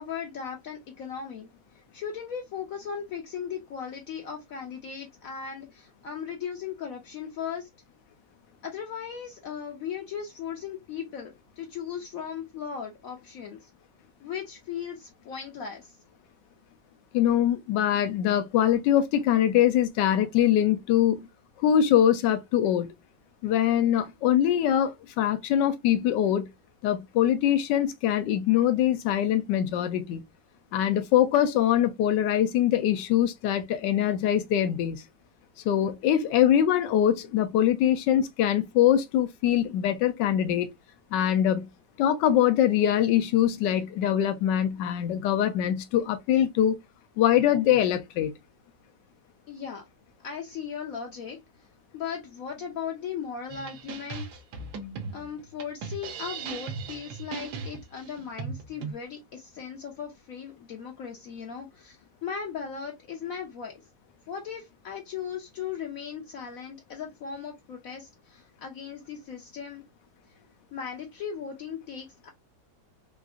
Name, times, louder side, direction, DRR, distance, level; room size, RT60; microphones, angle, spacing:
voice 1, 0.0-1.5 1.9-7.7 8.6-13.7 14.2-15.9 49.5-49.9 50.2-51.4 51.9-54.2 55.1-63.7 64.3-69.8 70.7-72.3, left 7 dB, 65° left, 0.9 m, -37 dB
voice 2, 17.1-21.3 21.6-22.9 23.4-26.5 26.8-30.2 30.7-35.0 35.6-40.7 41.1-41.7 42.0-46.8 47.2-48.3, left 10 dB, 85° left, 1.2 m, -23 dB
sound 1, 53.5-58.9, right 5 dB, 75° right, 1.3 m, -38 dB
3.7 x 2.4 x 2.3 m
omnidirectional pair, 1.8 m